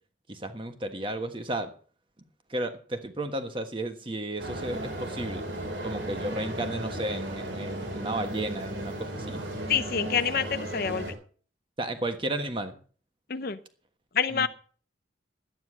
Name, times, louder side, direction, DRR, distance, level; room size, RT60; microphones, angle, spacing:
voice 1, 0.3-1.7 2.5-5.4 5.8-9.4 11.8-12.8 14.3-14.5, right 1 dB, 30° right, 7 dB, 1.4 m, -33 dB
sound 1, 4.4-11.1, right 1 dB, 85° right, 4.2 m, -35 dB
voice 2, 9.7-11.1 13.3-13.6 14.1-14.5, left 7 dB, 55° left, 13 dB, 0.7 m, -27 dB
11.5 x 9.5 x 6.4 m, 0.42 s
head